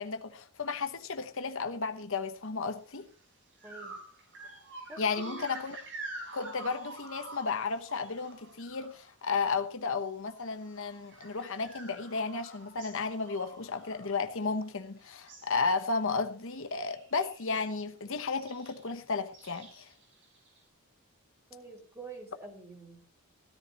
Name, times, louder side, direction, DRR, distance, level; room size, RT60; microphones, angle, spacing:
voice 1, 0.0-3.1 5.0-5.8 6.3-19.9, left 4 dB, 60° left, 1.0 m, -33 dB
sound 1, 2.9-3.1 3.6-9.7 10.0-14.8 15.1-15.6 15.9-16.2 16.5-17.7 18.4-18.9 19.3-20.6, right 2 dB, 55° right, 5.0 m, -48 dB
voice 2, 3.6-4.0 4.9-5.5 21.5-23.0, right 3 dB, 10° right, 3.9 m, -47 dB
16.5 x 13.5 x 3.0 m
head